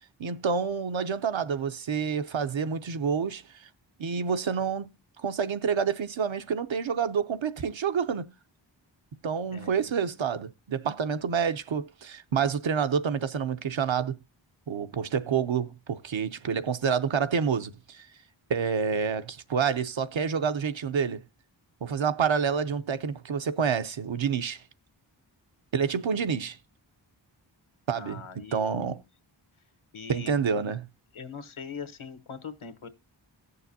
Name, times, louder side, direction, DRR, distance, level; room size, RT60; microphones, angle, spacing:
voice 1, 0.2-3.7 4.0-4.9 5.2-8.3 9.2-14.1 14.7-18.1 18.5-21.2 21.8-24.6 25.7-26.6 27.9-28.2 28.5-29.0 30.1-30.9, right 6 dB, 75° right, 0.8 m, -28 dB
voice 2, 9.5-9.9 26.3-26.4 27.9-29.0 29.9-30.3 31.1-32.9, left 6 dB, 85° left, 1.1 m, -42 dB
16.5 x 6.8 x 2.7 m
wide cardioid pair, 65°, 47 cm